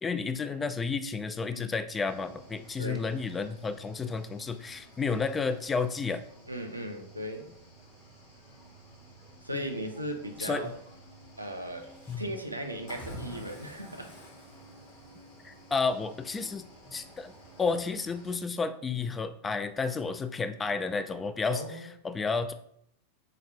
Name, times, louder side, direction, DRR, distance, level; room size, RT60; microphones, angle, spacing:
voice 1, 0.0-6.2 9.5-9.6 10.4-10.7 12.1-12.3 15.4-16.7 16.9-17.3 17.6-21.8 22.0-22.5, left 4 dB, 15° left, 11 dB, 0.3 m, -31 dB
Cricket / Waves surf, 2.0-18.4, equal, 55° left, 1.8 m, -51 dB
voice 2, 6.5-7.5 9.4-10.8 11.4-11.9 12.2-14.1 21.5-21.9, right 1 dB, 85° right, 4 dB, 0.6 m, -37 dB
5.6 x 2.4 x 3.4 m, 0.67 s
figure-of-eight pair, 90°, 0 cm